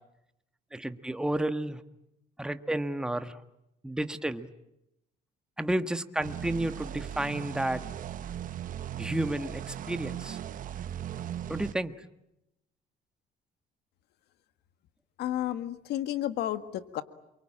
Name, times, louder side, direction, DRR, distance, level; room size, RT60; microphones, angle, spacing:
voice 1, 0.7-1.8 2.4-3.4 3.8-4.5 5.6-7.8 9.0-10.4 11.5-11.9, right 1 dB, 5° right, 9 dB, 1.4 m, -31 dB
sound 1, 6.2-11.7, right 10 dB, 55° right, 1.1 m, -38 dB
voice 2, 15.2-17.0, left 12 dB, 80° left, 10 dB, 1.8 m, -32 dB
28.0 x 24.0 x 8.8 m, 0.86 s
cardioid pair, 110°, 17 cm